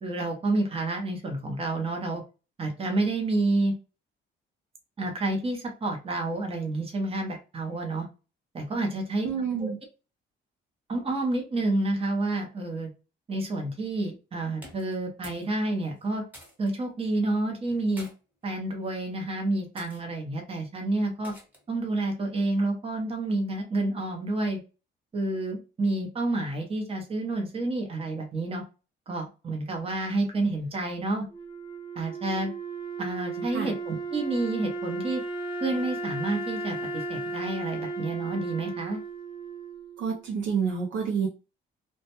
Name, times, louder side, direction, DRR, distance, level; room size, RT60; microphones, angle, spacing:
voice 1, 0.0-2.2 2.6-3.7 5.0-8.1 8.5-9.3 9.6-9.7 10.9-12.9 13.3-16.2 16.6-18.1 18.4-21.3 21.7-24.6 25.1-28.6 29.1-31.2 32.0-32.5 33.0-35.2 35.6-39.0, right 2 dB, 30° right, 2 dB, 0.7 m, -29 dB
voice 2, 9.2-9.8 33.4-33.7 40.0-41.3, right 6 dB, 70° right, 1 dB, 0.6 m, -29 dB
sound 1, 14.6-15.5 15.8-16.7 17.6-18.1 18.9-19.2 19.8-20.0 21.2-21.7, equal, 10° right, 1.0 m, -49 dB
Wind instrument woodwind instrument, 31.3-40.4, right 3 dB, 25° left, 0.6 m, -35 dB
2.2 x 2.1 x 2.9 m, 0.33 s
cardioid pair, 90°, 20 cm